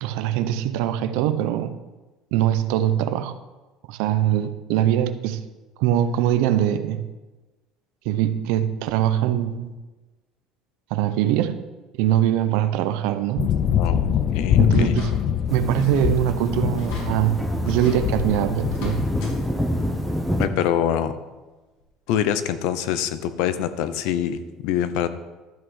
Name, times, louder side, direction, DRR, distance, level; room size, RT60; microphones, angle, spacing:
voice 1, 0.0-1.7 2.3-3.3 3.9-5.4 5.8-7.1 8.0-9.7 10.9-11.5 12.0-13.5 14.6-15.1 15.5-17.4 17.6-19.0, right 11 dB, 80° right, 11 dB, 0.7 m, -22 dB
sound 1, 13.4-19.4, left 9 dB, 35° left, 0.6 m, -24 dB
voice 2, 13.8-15.0 20.4-21.1 22.1-25.1, left 10 dB, 70° left, 12 dB, 0.8 m, -25 dB
sound 2, 14.7-15.4 15.7-16.1 16.4-16.5 16.8-17.1 17.6-18.0 18.6-19.4 19.7-19.8 21.2-21.3 21.8-21.9, left 3 dB, 85° left, 3.4 m, -41 dB
sound 3, 15.5-20.5, equal, ahead, 1.0 m, -28 dB
12.5 x 6.2 x 6.3 m, 1.2 s
cardioid pair, 175°, 0 cm